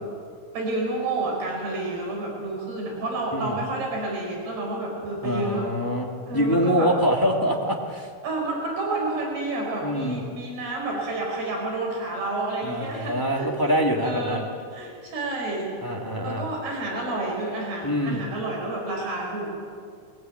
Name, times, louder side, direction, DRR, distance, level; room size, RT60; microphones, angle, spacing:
voice 1, 0.5-5.7 6.3-6.9 8.2-15.7 16.2-19.5, right 2 dB, 85° right, -1 dB, 7.1 m, -30 dB
voice 2, 5.2-8.1 9.8-10.2 12.6-14.4 15.8-16.5 17.8-18.2, equal, 10° left, -1 dB, 1.2 m, -25 dB
22.0 x 22.0 x 9.3 m, 2.1 s
omnidirectional pair, 4.6 m